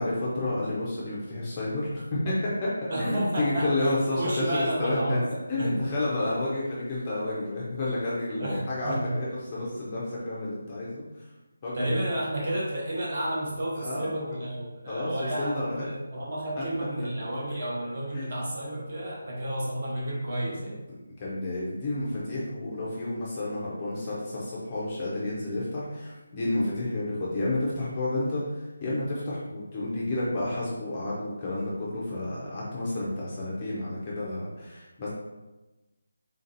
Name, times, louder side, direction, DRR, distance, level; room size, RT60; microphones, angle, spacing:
voice 1, 0.0-5.2 5.5-11.2 11.6-12.1 13.8-14.1 14.9-15.8 18.1-18.3 20.4-20.8 21.2-35.1, left 2 dB, 15° left, -7 dB, 0.5 m, -30 dB
voice 2, 2.9-5.2 5.6-5.7 8.4-9.2 11.7-20.8, right 1 dB, 30° right, -4 dB, 0.9 m, -31 dB
3.7 x 2.7 x 3.9 m, 1.1 s
figure-of-eight pair, 180°, 0 cm